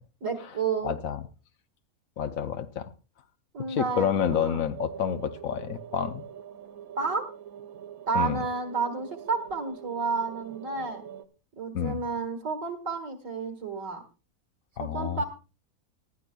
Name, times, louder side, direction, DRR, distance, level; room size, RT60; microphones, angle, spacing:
voice 1, 0.2-0.9 3.5-4.6 7.0-7.3 8.1-11.0 11.6-14.0 14.9-15.2, right 4 dB, 60° right, 6 dB, 2.0 m, -31 dB
voice 2, 0.8-1.2 2.2-2.9 3.7-6.2 8.1-8.4 11.7-12.0 14.8-15.2, left 8 dB, 70° left, 11 dB, 1.1 m, -29 dB
sound 1, 4.7-11.2, right 9 dB, 75° right, 1.3 m, -44 dB
19.0 x 12.0 x 2.3 m, 0.32 s
omnidirectional pair, 1.5 m